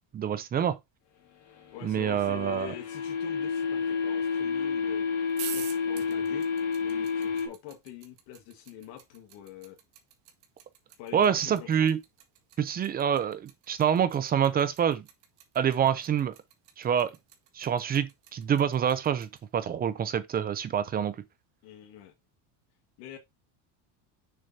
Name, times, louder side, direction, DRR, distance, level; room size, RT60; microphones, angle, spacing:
voice 1, 0.1-0.8 1.8-2.7 11.1-12.0 12.6-15.0 15.6-16.3 16.8-17.1 17.6-21.2, right 8 dB, 20° right, 0.4 m, -26 dB
sound 1, 1.5-7.5, left 5 dB, 55° left, 2.5 m, -30 dB
voice 2, 1.7-6.5 6.8-9.8 11.0-11.9 21.6-22.1 23.0-23.2, left 10 dB, 75° left, 1.6 m, -45 dB
sound 2, 5.3-19.4, right 10 dB, 55° right, 1.9 m, -45 dB
6.8 x 6.6 x 2.7 m
cardioid pair, 155°, 49 cm